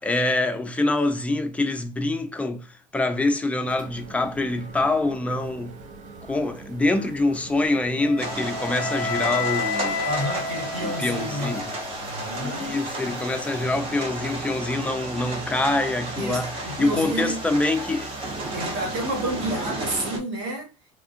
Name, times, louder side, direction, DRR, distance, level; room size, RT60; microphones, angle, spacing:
voice 1, 0.0-5.8 6.3-9.9 10.8-11.7 12.4-16.5 16.8-18.1, left 2 dB, 10° left, 0.5 m, -25 dB
sound 1, 3.6-20.0, right 4 dB, 55° right, 0.6 m, -44 dB
Wind instrument woodwind instrument, 8.0-12.0, left 4 dB, 55° left, 0.6 m, -30 dB
sound 2, 8.2-20.2, right 1 dB, 40° right, 1.0 m, -33 dB
voice 2, 9.8-12.8 16.1-17.6 18.5-21.0, right 1 dB, 85° right, 1.3 m, -31 dB
3.5 x 2.4 x 2.5 m
supercardioid pair, 120°, 15 cm